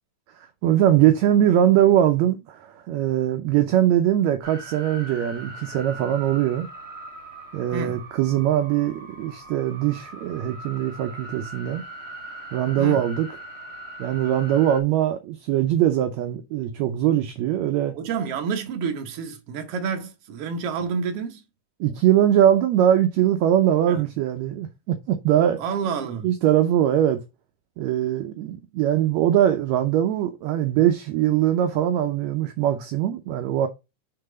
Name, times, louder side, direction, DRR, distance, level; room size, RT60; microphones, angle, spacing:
voice 1, 0.4-6.7 7.5-11.8 12.5-13.3 14.0-17.9 21.8-25.6 26.2-27.2 27.8-33.7, right 11 dB, 75° right, 1.7 m, -21 dB
sound 1, 4.4-14.8, right 1 dB, 35° right, 1.3 m, -40 dB
voice 2, 18.0-21.4 23.9-24.0 25.6-26.3, right 5 dB, 60° right, 1.8 m, -29 dB
6.7 x 3.8 x 4.9 m
omnidirectional pair, 3.7 m